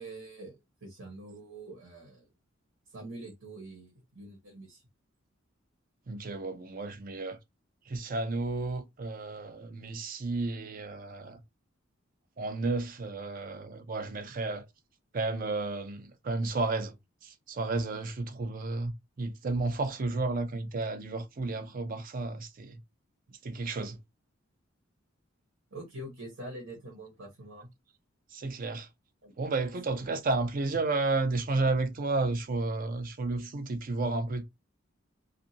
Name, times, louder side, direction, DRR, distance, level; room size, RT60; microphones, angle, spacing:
voice 1, 0.0-2.3 2.9-4.8 25.7-27.7 29.2-29.3, right 1 dB, 85° right, 1.1 m, -45 dB
voice 2, 6.1-7.4 7.9-11.4 12.4-14.6 15.1-16.9 17.2-18.9 19.2-22.8 23.4-24.0 28.3-28.9 29.4-34.4, right 3 dB, 45° right, 0.5 m, -32 dB
2.6 x 2.5 x 2.7 m
head